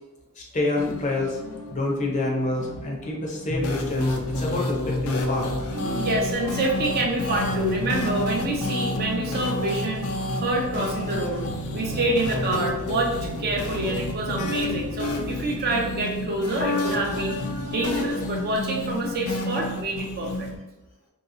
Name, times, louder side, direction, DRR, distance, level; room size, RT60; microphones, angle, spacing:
voice 1, 0.4-1.4 1.7-5.5, left 2 dB, 35° left, -1 dB, 0.6 m, -27 dB
sound 1, 0.8-20.6, left 2 dB, 75° left, 0.4 m, -30 dB
sound 2, 1.3-1.9 2.5-3.1 5.7-6.9 7.3-8.0 8.9-9.4 11.7-12.2 13.3-13.8, equal, 75° right, 0.8 m, -39 dB
voice 2, 5.9-11.4 11.7-17.4 17.7-20.5, right 2 dB, 45° right, 0 dB, 0.5 m, -27 dB
2.8 x 2.8 x 2.6 m, 1.0 s
head